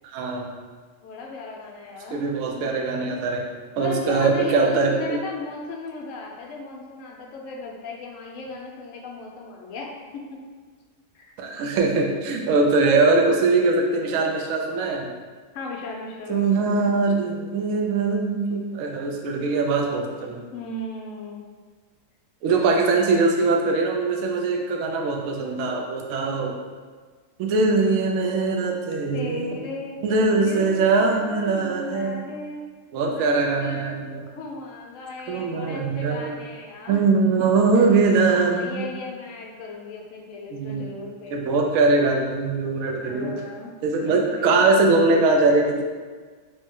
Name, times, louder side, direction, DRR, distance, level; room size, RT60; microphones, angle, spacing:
voice 1, 0.1-0.6 2.1-3.4 3.8-5.2 11.4-15.1 16.3-20.4 22.4-26.5 27.4-29.7 30.0-32.2 32.9-34.3 35.3-36.4 36.9-38.8 40.5-40.9 41.3-43.3 43.8-45.8, right 3 dB, 70° right, 1 dB, 0.8 m, -22 dB
voice 2, 1.0-2.2 3.8-10.4 11.1-11.3 15.5-16.9 20.5-21.5 22.5-23.2 29.1-30.0 30.4-32.6 33.1-34.0 34.3-37.0 37.7-37.9 38.3-41.4 43.0-43.7 44.0-44.6, left 3 dB, 75° left, -1 dB, 0.7 m, -36 dB
3.1 x 2.6 x 3.5 m, 1.5 s
omnidirectional pair, 1.9 m